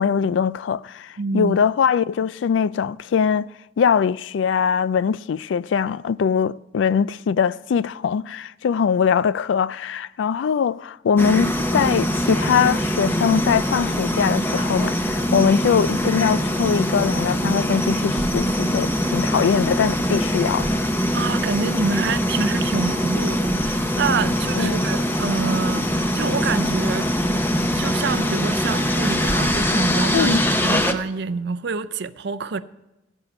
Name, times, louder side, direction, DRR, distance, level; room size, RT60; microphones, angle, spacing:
voice 1, 0.0-3.5 3.8-20.7 24.6-24.8 30.1-30.4, left 7 dB, 85° left, 0.3 m, -22 dB
voice 2, 1.2-1.6 15.4-15.5 21.1-27.1 27.7-32.6, right 4 dB, 65° right, 0.5 m, -27 dB
sound 1, 11.2-30.9, equal, 10° left, 0.7 m, -22 dB
15.5 x 8.3 x 5.3 m
head